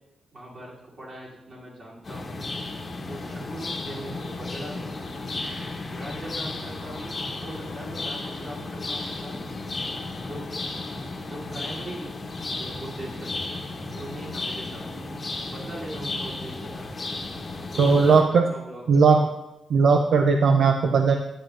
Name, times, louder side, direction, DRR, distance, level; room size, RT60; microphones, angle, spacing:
voice 1, 0.3-2.4 3.0-5.2 5.9-9.4 10.1-10.4 11.3-12.1 12.5-13.4 13.9-14.8 15.5-16.9 17.7-19.0, right 1 dB, 40° right, -6 dB, 3.0 m, -40 dB
sound 1, 2.0-18.2, left 2 dB, 30° left, 1.1 m, -34 dB
voice 2, 17.8-18.4 18.9-19.3 19.7-21.2, right 5 dB, 65° right, 5 dB, 0.5 m, -18 dB
10.0 x 9.3 x 2.5 m, 0.93 s
wide cardioid pair, 165°, 0 cm